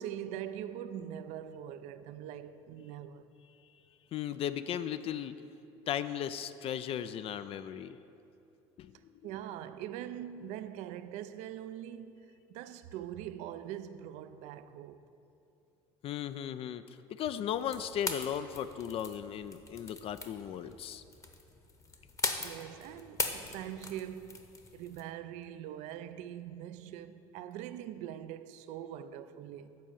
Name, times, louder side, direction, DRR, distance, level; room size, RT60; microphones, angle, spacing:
voice 1, 0.0-3.3 9.2-15.1 22.4-29.8, right 10 dB, 70° right, 0.4 m, -43 dB
voice 2, 4.1-5.3 5.9-8.0 8.8-8.9 16.0-16.8 17.1-21.0, left 9 dB, 50° left, 0.3 m, -36 dB
sound 1, 17.5-25.0, left 3 dB, 25° left, 0.9 m, -41 dB
7.5 x 4.7 x 7.0 m
hypercardioid pair, 75°, 13 cm